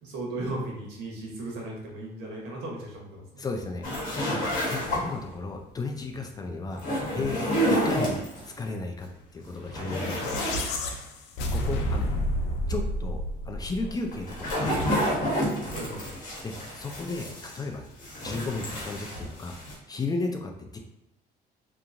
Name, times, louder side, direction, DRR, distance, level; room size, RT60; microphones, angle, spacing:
voice 1, 0.0-3.5 9.6-10.5 15.7-16.1, right 2 dB, 85° right, -3 dB, 1.0 m, -37 dB
voice 2, 3.4-3.8 4.1-8.2 8.6-9.1 9.3-10.7 11.5-12.1 12.7-15.4 16.4-19.6 19.9-20.8, left 3 dB, 25° left, 3 dB, 0.3 m, -34 dB
sound 1, 3.8-5.3 6.7-8.5 9.0-9.1 9.5-10.6 11.0-11.1 13.9-17.7 18.0-19.7, equal, 50° left, 1.1 m, -29 dB
sound 2, 9.8-14.3, equal, 90° left, 0.4 m, -30 dB
2.8 x 2.4 x 2.5 m, 0.87 s
cardioid pair, 110°, 17 cm